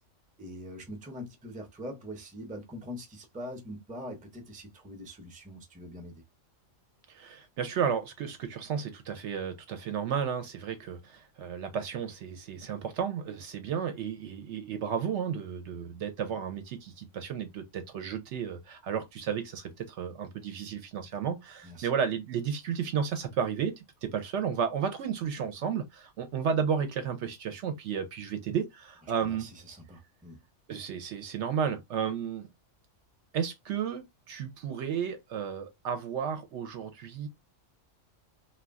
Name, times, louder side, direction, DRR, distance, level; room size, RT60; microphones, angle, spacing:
voice 1, 0.4-6.1 21.6-21.9 29.2-30.4, equal, 10° right, 0.4 m, -43 dB
voice 2, 7.1-23.7 24.0-29.5 30.7-32.5 33.3-37.3, right 7 dB, 65° right, 0.8 m, -33 dB
2.3 x 2.2 x 3.4 m
omnidirectional pair, 1.4 m